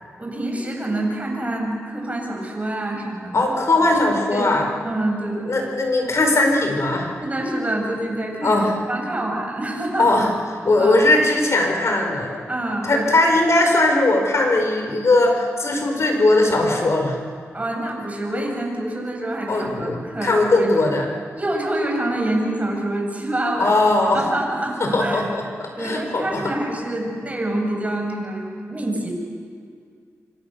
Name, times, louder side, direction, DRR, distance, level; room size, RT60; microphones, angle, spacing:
voice 1, 0.2-3.5 4.3-5.7 7.2-10.1 10.8-11.0 12.5-13.1 17.5-20.7 21.4-23.7 24.1-25.3 25.8-29.1, right 1 dB, 25° right, 0 dB, 7.5 m, -26 dB
voice 2, 3.3-4.6 5.5-7.1 8.4-8.7 10.0-10.3 10.6-12.4 12.9-17.2 19.5-21.1 23.6-24.2 24.8-26.4, left 2 dB, 60° left, 3 dB, 4.9 m, -19 dB
26.0 x 25.5 x 6.9 m, 2.2 s
wide cardioid pair, 80°, 5 cm